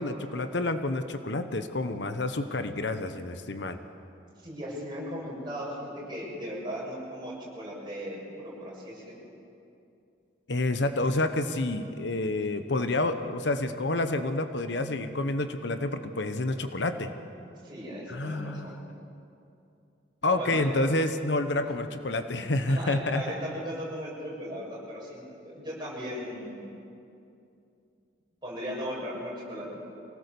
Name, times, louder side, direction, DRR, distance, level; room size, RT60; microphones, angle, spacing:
voice 1, 0.0-3.8 10.5-17.1 18.1-18.7 20.2-23.2, left 2 dB, 70° left, 9 dB, 1.0 m, -29 dB
voice 2, 4.4-9.1 17.6-18.7 20.2-20.7 21.6-21.7 22.4-26.7 28.4-29.9, equal, 25° right, -5 dB, 7.1 m, -37 dB
25.5 x 18.0 x 6.9 m, 2.6 s
head